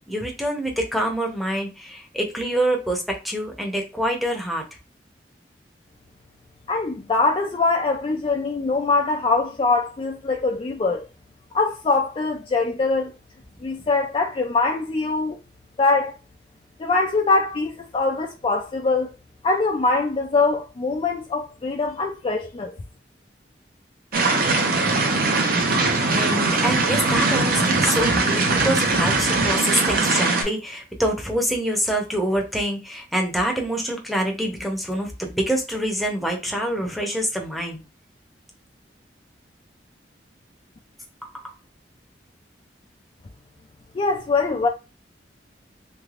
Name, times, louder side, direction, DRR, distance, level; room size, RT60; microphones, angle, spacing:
voice 1, 0.1-4.7 26.0-37.8 41.2-41.3, equal, ahead, 0.7 m, -26 dB
voice 2, 6.7-11.0 11.5-13.1 13.6-15.4 15.8-16.1 16.8-19.1 19.4-22.7 43.9-44.7, left 3 dB, 30° left, 0.3 m, -23 dB
sound 1, 24.1-30.4, right 3 dB, 55° right, 0.6 m, -21 dB
3.3 x 3.0 x 2.4 m
head